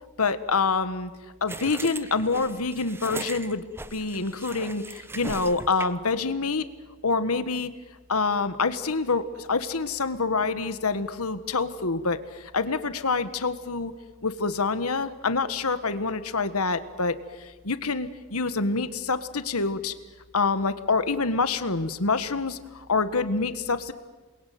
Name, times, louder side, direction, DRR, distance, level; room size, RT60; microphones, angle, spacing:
voice 1, 0.2-1.1 1.4-3.6 3.9-6.7 7.0-7.7 8.1-13.9 14.2-19.9 20.3-23.9, left 4 dB, 85° left, 12 dB, 1.6 m, -26 dB
sound 1, 1.5-6.1, right 2 dB, 10° right, 0.8 m, -39 dB
28.5 x 22.0 x 9.4 m, 1.3 s
head